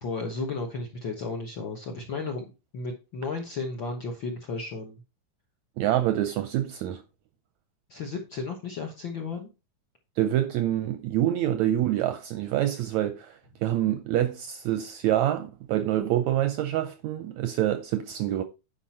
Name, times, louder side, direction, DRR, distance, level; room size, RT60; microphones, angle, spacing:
voice 1, 0.0-5.0 7.9-9.5, left 3 dB, 60° left, 1.3 m, -34 dB
voice 2, 5.8-7.0 10.2-18.4, right 12 dB, 80° right, 1.7 m, -26 dB
10.0 x 5.3 x 4.3 m
omnidirectional pair, 3.9 m